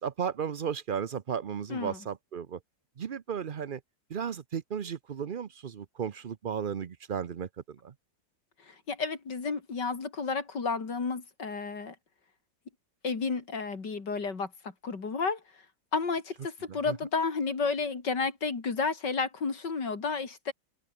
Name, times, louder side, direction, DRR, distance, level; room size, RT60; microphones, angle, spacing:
voice 1, 0.0-2.6 3.0-3.8 4.1-7.9 16.7-17.0, right 7 dB, 75° right, 0.4 m, -34 dB
voice 2, 8.7-12.0 13.0-15.4 15.9-20.5, left 4 dB, 65° left, 3.6 m, -32 dB
omnidirectional pair, 2.0 m